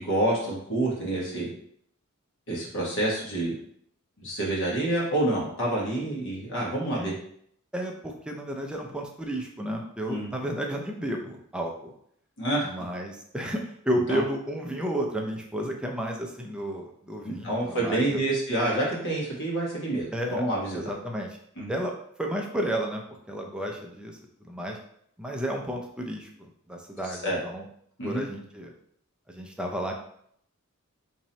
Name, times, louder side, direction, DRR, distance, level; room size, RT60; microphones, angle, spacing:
voice 1, 0.0-1.5 2.5-3.5 4.2-7.1 10.1-10.3 12.4-12.7 14.1-14.2 17.2-20.8 21.6-21.7 27.2-27.4 28.0-28.2, right 1 dB, 60° left, -4 dB, 1.3 m, -28 dB
voice 2, 7.7-11.9 12.6-18.2 20.1-20.5 20.7-21.4 21.7-21.9 22.2-24.2 24.4-24.8 25.2-27.7 28.0-28.7 29.3-29.9, right 1 dB, 5° right, 0 dB, 0.4 m, -32 dB
3.0 x 2.7 x 4.1 m, 0.68 s
head